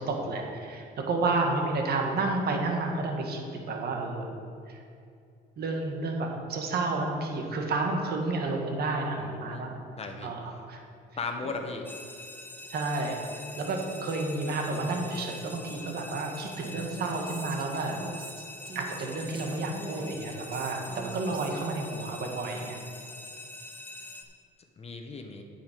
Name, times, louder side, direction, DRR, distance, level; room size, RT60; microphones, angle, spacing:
voice 1, 0.0-4.3 4.7-4.8 5.6-9.7 10.2-10.8 12.7-13.2 13.6-18.0 18.7-22.8, right 3 dB, 60° right, 1 dB, 1.7 m, -31 dB
voice 2, 9.2-9.7 10.0-10.3 11.2-11.9 24.8-25.4, left 4 dB, 35° left, 4 dB, 1.1 m, -37 dB
sound 1, 11.8-24.2, left 2 dB, 10° left, 1.1 m, -44 dB
Female speech woman speaking, 16.6-22.0, right 3 dB, 25° right, 0.9 m, -43 dB
9.3 x 7.4 x 5.2 m, 2.4 s
cardioid pair, 110°, 19 cm